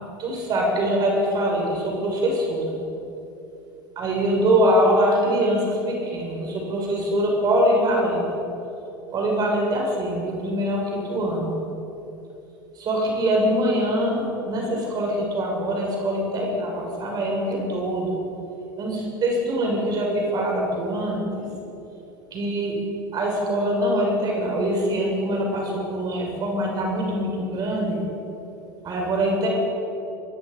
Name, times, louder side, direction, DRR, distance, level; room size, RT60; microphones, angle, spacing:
voice 1, 0.2-2.8 3.9-8.2 9.1-11.5 12.7-18.2 18.8-21.5 22.3-22.7 23.1-28.0 28.8-29.5, right 1 dB, 35° right, -1 dB, 6.8 m, -23 dB
25.5 x 21.5 x 5.5 m, 2.9 s
figure-of-eight pair, 75°, 11 cm